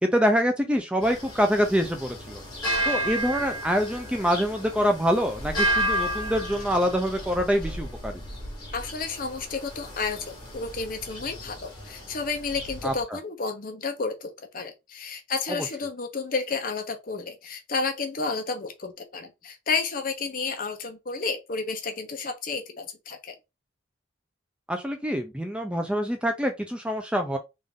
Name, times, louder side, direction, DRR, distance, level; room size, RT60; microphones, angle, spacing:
voice 1, 0.0-2.4 2.9-8.1 12.8-12.9 15.5-15.7 24.7-27.4, equal, 5° right, 0.4 m, -25 dB
sound 1, 1.0-13.0, right 1 dB, 20° left, 1.5 m, -32 dB
voice 2, 8.7-23.4, left 4 dB, 45° left, 0.7 m, -31 dB
3.6 x 2.5 x 3.5 m
head